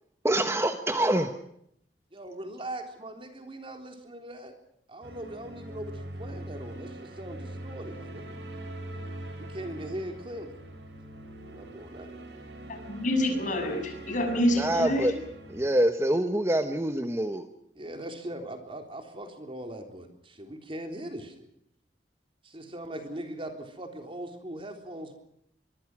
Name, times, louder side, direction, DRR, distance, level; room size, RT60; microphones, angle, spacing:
voice 1, 0.2-1.3 14.6-15.1 15.5-17.5, right 1 dB, 15° right, 8 dB, 1.2 m, -25 dB
voice 2, 2.1-4.5 4.9-8.4 9.4-10.5 11.5-12.1 17.8-21.5 22.4-25.2, right 1 dB, 30° right, 5 dB, 3.7 m, -40 dB
sound 1, 5.0-15.7, right 1 dB, 90° right, 6.6 m, -42 dB
voice 3, 12.7-15.1, left 1 dB, 45° left, 5 dB, 7.0 m, -27 dB
23.5 x 23.5 x 6.2 m, 0.72 s
head